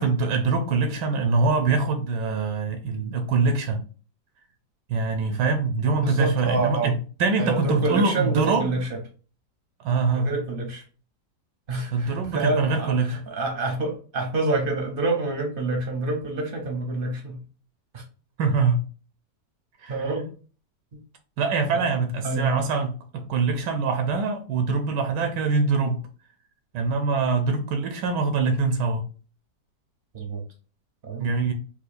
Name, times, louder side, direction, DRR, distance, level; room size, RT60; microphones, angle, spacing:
voice 1, 0.0-3.8 4.9-6.9 7.2-8.7 9.8-10.3 11.9-13.2 18.4-18.8 19.8-20.0 21.4-26.0 26.7-29.0 31.2-31.5, right 4 dB, 85° right, 1.2 m, -24 dB
voice 2, 6.0-6.9 7.4-9.0 9.9-10.8 11.7-17.4 17.9-18.0 19.9-20.3 22.0-22.6 30.1-30.4 31.0-31.3, right 2 dB, 50° right, 0.6 m, -27 dB
4.2 x 2.4 x 2.5 m
omnidirectional pair, 1.8 m